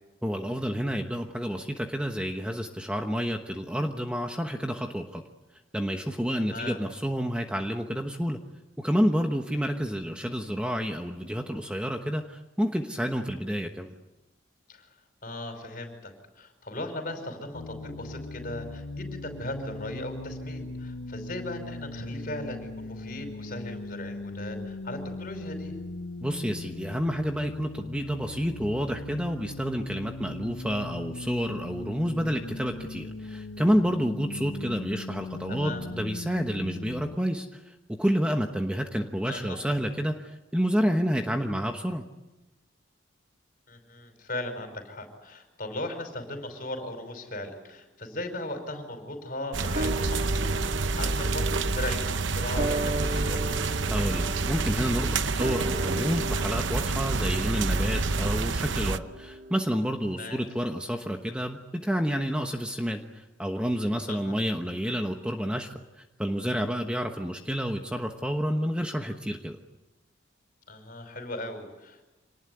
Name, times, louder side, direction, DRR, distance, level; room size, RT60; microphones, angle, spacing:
voice 1, 0.2-5.2 5.7-8.4 8.8-13.9 26.2-42.0 53.9-65.7 66.2-69.6, equal, 5° right, 4 dB, 1.1 m, -29 dB
voice 2, 6.4-6.8 14.7-14.9 15.2-25.7 35.5-35.8 39.3-39.6 43.7-53.5 60.2-60.4 64.1-64.4 70.7-72.1, left 1 dB, 45° left, 6 dB, 5.3 m, -38 dB
sound 1, 17.5-37.2, left 2 dB, 85° left, 1.1 m, -39 dB
sound 2, 49.5-59.0, right 3 dB, 70° right, 0.9 m, -28 dB
sound 3, 49.7-60.4 60.6-60.7, right 1 dB, 45° right, 1.8 m, -36 dB
26.5 x 19.5 x 9.7 m, 1.1 s
head